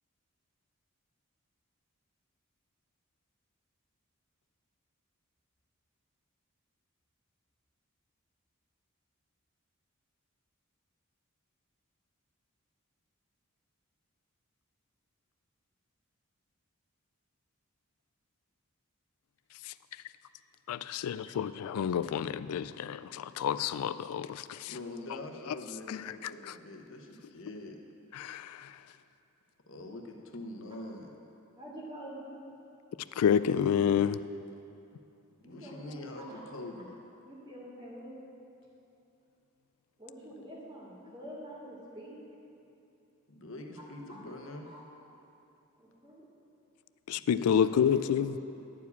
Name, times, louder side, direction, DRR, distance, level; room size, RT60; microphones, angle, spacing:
voice 1, 19.5-20.0 20.7-24.8 25.5-25.6 25.9-26.6 28.1-28.9 33.1-34.2 47.1-48.4, left 8 dB, 90° left, 14 dB, 0.3 m, -30 dB
voice 2, 24.7-27.8 29.7-31.1 35.4-37.0 43.3-44.7 47.4-48.4, left 1 dB, 65° left, 2 dB, 1.0 m, -44 dB
voice 3, 31.6-32.3 35.4-35.7 36.1-36.4 37.2-38.2 40.0-42.2 44.1-44.2 44.7-44.8 45.8-46.3, equal, 20° right, -5 dB, 2.0 m, -46 dB
11.0 x 4.9 x 8.2 m, 2.7 s
head